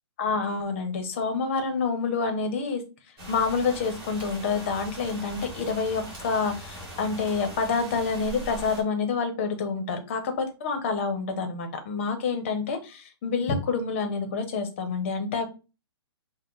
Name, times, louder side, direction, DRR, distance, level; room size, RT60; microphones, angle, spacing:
voice 1, 0.2-2.8 3.3-15.5, left 4 dB, 30° left, 6 dB, 0.7 m, -28 dB
sound 1, 3.2-8.8, right 1 dB, 25° right, 2.4 m, -41 dB
5.7 x 2.1 x 3.8 m, 0.31 s
hypercardioid pair, 170°, 14 cm